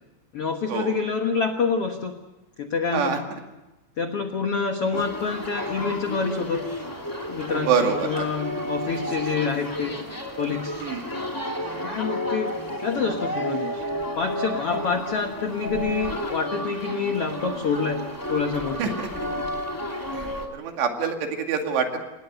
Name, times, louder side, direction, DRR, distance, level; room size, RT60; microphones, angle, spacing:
voice 1, 0.3-2.1 2.6-3.1 4.0-6.6 7.3-9.9 10.4-10.7 11.8-12.5 12.8-13.8 14.2-18.9, left 5 dB, 75° left, 5 dB, 1.3 m, -27 dB
sound 1, 4.9-20.5, equal, 5° left, 1.7 m, -31 dB
voice 2, 7.7-8.2 10.8-11.1 14.7-14.8 18.8-19.1 20.1-22.0, right 6 dB, 80° right, 4 dB, 4.4 m, -26 dB
27.0 x 19.0 x 8.1 m, 1.0 s
omnidirectional pair, 4.9 m